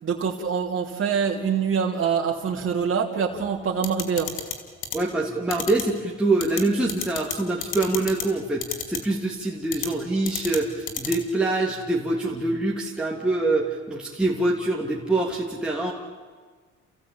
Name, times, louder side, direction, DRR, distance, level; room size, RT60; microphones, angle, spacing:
voice 1, 0.0-4.3, right 6 dB, 45° right, -2 dB, 2.9 m, -25 dB
sound 1, 3.8-4.5 4.8-5.0 5.5-5.8 6.4-6.6 6.9-7.3 7.6-8.2 8.6-9.0 9.7-9.9 10.3-10.6 10.9-11.2, left 8 dB, 85° left, 2.6 m, -29 dB
voice 2, 4.9-15.9, right 2 dB, 5° right, -3 dB, 2.8 m, -25 dB
29.5 x 16.0 x 8.6 m, 1.5 s
cardioid pair, 90°, 30 cm